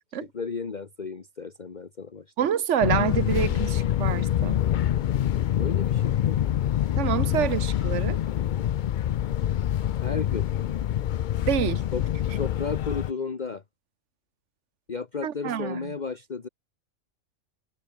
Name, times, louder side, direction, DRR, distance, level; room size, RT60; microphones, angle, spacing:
voice 1, 0.2-2.3 5.5-6.4 10.0-10.5 11.9-12.0 12.3-13.6 14.9-16.5, left 5 dB, 35° left, 1.3 m, -33 dB
voice 2, 2.4-4.6 7.0-8.2 11.5-11.8 15.2-15.9, right 9 dB, 65° right, 1.4 m, -27 dB
Fixed-wing aircraft airplane, 2.8-13.1, left 11 dB, 70° left, 0.4 m, -26 dB
omnidirectional pair, 1.3 m